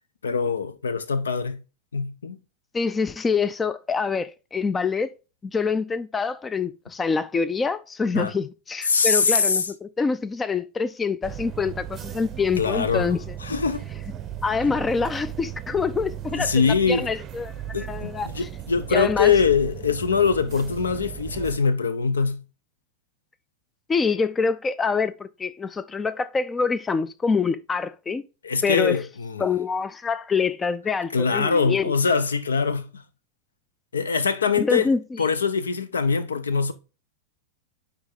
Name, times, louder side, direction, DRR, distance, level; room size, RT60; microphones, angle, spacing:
voice 1, 0.2-1.6 1.9-2.4 8.1-8.3 8.9-9.7 12.6-13.1 13.4-13.8 16.3-17.1 17.7-22.4 28.4-29.5 31.1-33.0 33.9-34.9 35.2-36.7, left 5 dB, 70° left, 0.6 m, -23 dB
voice 2, 2.7-5.1 5.4-13.4 14.4-18.5 18.9-19.3 23.9-28.2 28.6-29.0 29.4-31.9 34.6-35.0, left 5 dB, 15° left, 0.3 m, -25 dB
sound 1, 11.2-21.6, right 11 dB, 25° right, 0.6 m, -36 dB
9.4 x 3.4 x 3.9 m
figure-of-eight pair, 90°, 0 cm